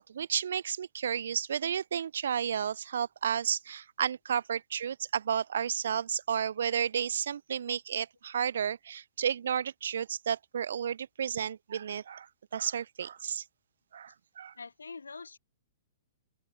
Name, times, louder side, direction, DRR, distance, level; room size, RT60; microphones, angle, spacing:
voice 1, 0.0-12.3 12.5-13.4 13.9-14.5, right 8 dB, 70° right, 0.6 m, -32 dB
voice 2, 14.6-15.4, left 4 dB, 90° left, 7.1 m, -44 dB
open air
hypercardioid pair, 120°, 0 cm